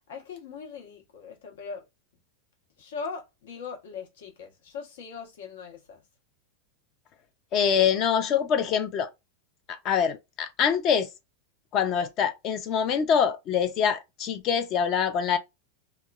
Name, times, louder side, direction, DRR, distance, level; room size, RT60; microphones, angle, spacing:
voice 1, 0.1-1.8 2.8-6.0, left 5 dB, 90° left, 1.0 m, -40 dB
voice 2, 7.5-9.1 9.7-11.1 11.7-15.4, left 7 dB, 30° left, 0.3 m, -25 dB
3.0 x 2.1 x 2.3 m
supercardioid pair, 160°, 0 cm